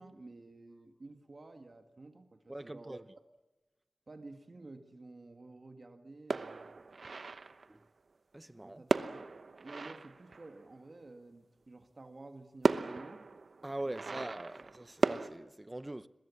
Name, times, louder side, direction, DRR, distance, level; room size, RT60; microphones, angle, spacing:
voice 1, 0.0-3.1 4.1-7.2 8.5-13.3 13.8-14.2 14.6-14.7, right 2 dB, 45° right, 1.8 m, -52 dB
voice 2, 2.5-3.0 7.7-7.8 8.3-8.8 13.6-16.1, right 1 dB, 20° right, 0.8 m, -42 dB
sound 1, 6.3-7.8 8.9-10.8 12.0-12.1 12.6-15.3, right 4 dB, 65° right, 0.9 m, -35 dB
23.0 x 21.5 x 8.5 m
wide cardioid pair, 105°, 0 cm